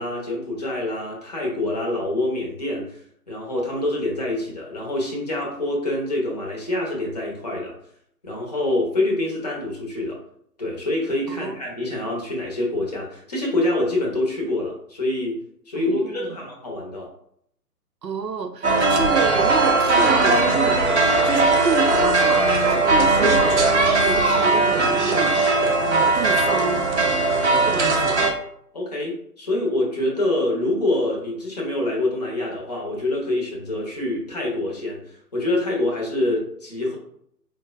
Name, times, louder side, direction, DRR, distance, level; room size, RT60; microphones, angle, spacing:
voice 1, 0.0-7.8 8.2-10.2 10.6-15.4 15.7-17.1 27.6-27.8 28.7-37.0, left 1 dB, 25° left, -2 dB, 0.6 m, -26 dB
voice 2, 15.8-16.4 18.0-20.8 21.2-23.7 24.0-25.4 25.8-26.9 27.6-28.2, right 5 dB, 85° right, 7 dB, 0.6 m, -29 dB
sound 1, 18.6-28.3, right 3 dB, 45° right, 0.5 m, -19 dB
4.5 x 2.1 x 2.3 m, 0.70 s
figure-of-eight pair, 135°, 49 cm